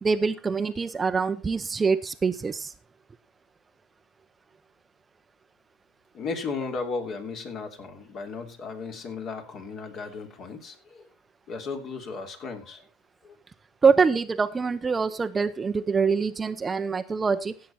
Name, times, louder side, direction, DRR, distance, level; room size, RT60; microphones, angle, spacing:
voice 1, 0.0-2.7 13.8-17.5, right 5 dB, 20° right, 11 dB, 0.7 m, -24 dB
voice 2, 6.1-11.0 11.5-12.8 13.2-13.4, left 4 dB, 45° left, 5 dB, 3.0 m, -35 dB
16.5 x 7.5 x 4.2 m, 0.31 s
supercardioid pair, 115°, 0 cm